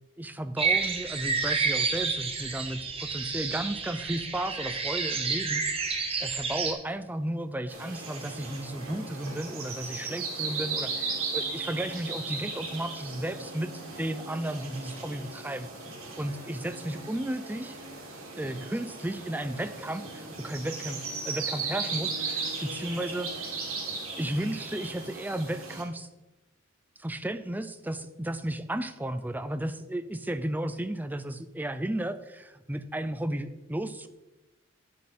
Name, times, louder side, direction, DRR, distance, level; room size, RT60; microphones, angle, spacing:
voice 1, 0.2-5.6 6.2-15.7 16.2-17.8 18.4-23.3 24.2-26.1 27.0-34.1, right 1 dB, 10° right, 10 dB, 0.5 m, -34 dB
sound 1, 0.6-6.7, right 5 dB, 25° right, 1.0 m, -30 dB
sound 2, 7.7-25.8, right 4 dB, 85° right, 2.7 m, -37 dB
9.8 x 7.3 x 4.2 m, 1.0 s
head